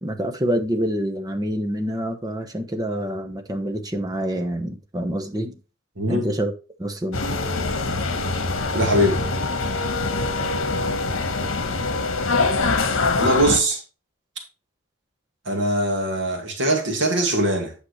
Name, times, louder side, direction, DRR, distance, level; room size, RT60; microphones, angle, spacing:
voice 1, 0.0-5.6 6.1-6.5 6.8-7.2, equal, 20° right, 1.0 m, -26 dB
sound 1, 7.1-13.6, left 3 dB, 75° left, 1.3 m, -24 dB
voice 2, 8.7-9.2 13.2-13.8 15.5-17.7, right 1 dB, 60° right, 2.2 m, -21 dB
8.8 x 6.4 x 3.2 m
head